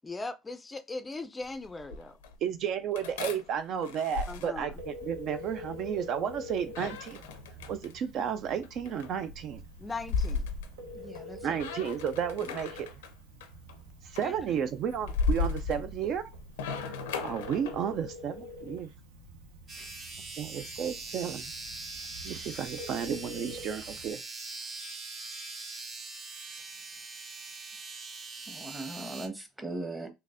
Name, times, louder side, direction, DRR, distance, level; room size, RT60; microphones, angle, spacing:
voice 1, 0.0-2.2 4.3-4.8 9.8-10.5 14.2-14.7, left 3 dB, 20° left, 0.4 m, -39 dB
sound 1, 1.4-2.4 3.0-5.2 6.7-7.9 8.6-11.3 11.6-13.1 13.4-13.8 14.2-18.0, left 4 dB, 85° left, 0.4 m, -35 dB
voice 2, 2.4-7.3 7.7-9.6 11.4-12.9 14.0-16.2 16.9-17.0 17.2-18.9 20.4-21.4 22.2-24.2, right 8 dB, 60° right, 0.3 m, -33 dB
Telephone, 4.7-24.1, left 1 dB, 85° right, 0.7 m, -46 dB
voice 3, 10.9-11.6 19.7-19.9 28.5-30.1, right 2 dB, 15° right, 1.0 m, -39 dB
sound 2, 19.7-29.3, right 3 dB, 40° right, 0.9 m, -42 dB
3.8 x 2.7 x 2.5 m
hypercardioid pair, 65°, 0 cm